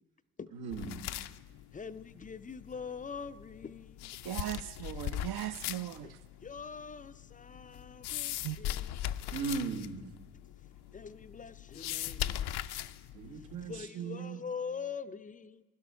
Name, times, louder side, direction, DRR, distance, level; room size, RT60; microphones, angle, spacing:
voice 1, 0.5-1.1 9.3-10.1 13.1-14.4, right 5 dB, 80° right, 1.7 m, -38 dB
sound 1, 0.7-13.8, left 12 dB, 60° left, 0.6 m, -40 dB
voice 2, 1.7-4.1 6.0-6.1 6.4-9.0 10.9-12.5 13.7-15.6, left 6 dB, 20° left, 0.5 m, -43 dB
voice 3, 4.2-6.2 8.4-8.6, right 14 dB, 60° right, 0.7 m, -38 dB
16.0 x 11.5 x 5.6 m
supercardioid pair, 65°, 45 cm